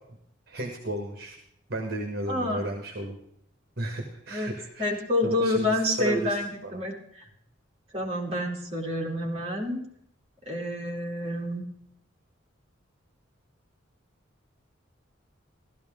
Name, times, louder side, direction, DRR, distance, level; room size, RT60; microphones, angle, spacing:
voice 1, 0.5-1.4 1.7-3.2 3.8-6.7, right 2 dB, 50° right, 3 dB, 1.5 m, -34 dB
voice 2, 2.3-2.7 4.3-4.5 4.8-7.2 7.9-9.8 10.5-11.7, left 1 dB, 30° right, -1 dB, 2.6 m, -28 dB
15.0 x 13.0 x 3.6 m, 0.72 s
head